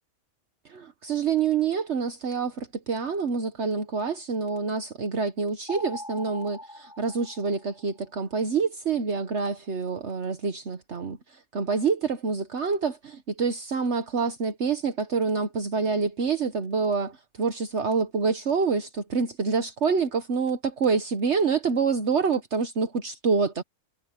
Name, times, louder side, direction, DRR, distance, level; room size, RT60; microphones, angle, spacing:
voice 1, 0.6-23.6, right 5 dB, 60° right, 1.5 m, -27 dB
sound 1, 5.7-8.1, left 1 dB, 5° right, 6.8 m, -41 dB
omnidirectional pair, 1.3 m